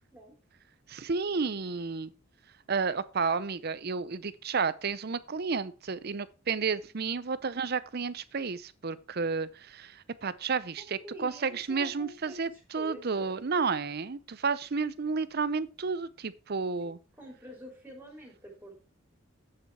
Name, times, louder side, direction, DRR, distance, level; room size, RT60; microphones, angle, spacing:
voice 1, 0.9-2.1 2.7-17.0, right 5 dB, 50° right, 0.6 m, -31 dB
voice 2, 11.0-12.4 12.8-13.4 16.8-16.9 17.2-18.7, equal, 10° right, 3.5 m, -46 dB
8.8 x 7.0 x 4.7 m
head